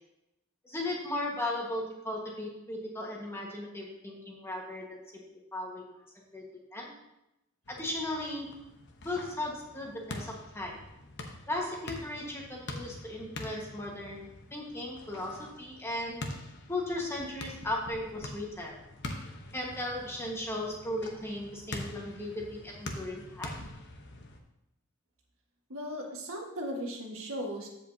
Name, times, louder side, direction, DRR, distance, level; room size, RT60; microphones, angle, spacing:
voice 1, 0.6-5.2 5.5-5.8 6.3-6.4 6.7-6.9 7.7-8.6 9.0-10.8 11.5-16.2 16.7-18.8 19.5-23.5, left 1 dB, 10° left, -2 dB, 1.4 m, -36 dB
sound 1, 7.6-24.4, left 2 dB, 55° left, 1.0 m, -45 dB
voice 2, 25.7-27.7, equal, 70° right, 0 dB, 1.6 m, -37 dB
14.5 x 5.2 x 2.7 m, 0.89 s
head